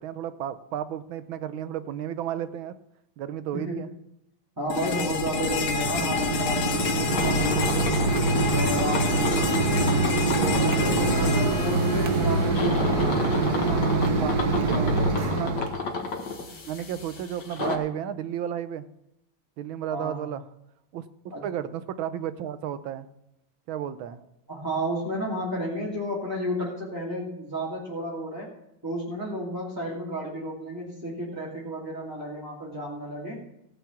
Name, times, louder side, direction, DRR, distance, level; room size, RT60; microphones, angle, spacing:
voice 1, 0.0-2.7 3.2-3.9 5.4-5.6 11.1-11.4 14.2-14.3 14.7-15.6 16.7-18.8 19.6-20.4 20.9-23.1 23.7-24.2, right 10 dB, 75° right, 13 dB, 1.5 m, -33 dB
voice 2, 3.5-3.8 4.6-9.9 10.4-15.5 19.9-20.2 21.3-21.4 24.5-28.5 28.8-33.4, equal, 10° right, -7 dB, 2.6 m, -32 dB
sound 1, 4.7-12.7, left 6 dB, 80° left, 2.0 m, -29 dB
Mechanisms, 4.7-15.7, right 3 dB, 55° right, 1.5 m, -25 dB
sound 2, 7.1-17.8, left 4 dB, 55° left, 2.1 m, -33 dB
17.0 x 5.8 x 7.2 m, 0.84 s
omnidirectional pair, 2.2 m